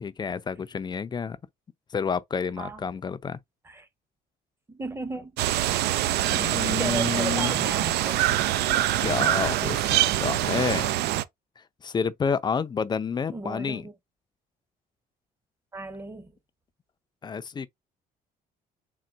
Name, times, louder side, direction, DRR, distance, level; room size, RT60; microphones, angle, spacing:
voice 1, 0.0-1.4 1.9-3.4 6.3-7.8 8.3-8.4 9.0-10.9 11.6-13.9 17.2-17.7, left 6 dB, 25° left, 0.4 m, -29 dB
voice 2, 4.7-5.3 6.8-8.2 13.3-13.9 15.7-16.3, right 3 dB, 15° right, 0.8 m, -35 dB
sound 1, 5.4-11.2, right 14 dB, 75° right, 0.4 m, -24 dB
3.9 x 2.1 x 4.4 m
cardioid pair, 110°, 17 cm